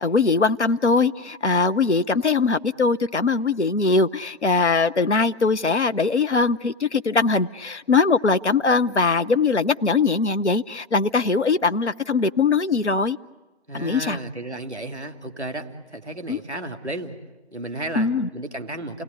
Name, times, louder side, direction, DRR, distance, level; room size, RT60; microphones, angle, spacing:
voice 1, 0.0-13.2 13.7-14.2 16.3-16.4 18.0-18.3, left 4 dB, 85° left, 0.8 m, -21 dB
voice 2, 13.7-17.2 17.5-19.0, right 2 dB, ahead, 1.8 m, -33 dB
30.0 x 18.5 x 9.9 m
figure-of-eight pair, 165°, 34 cm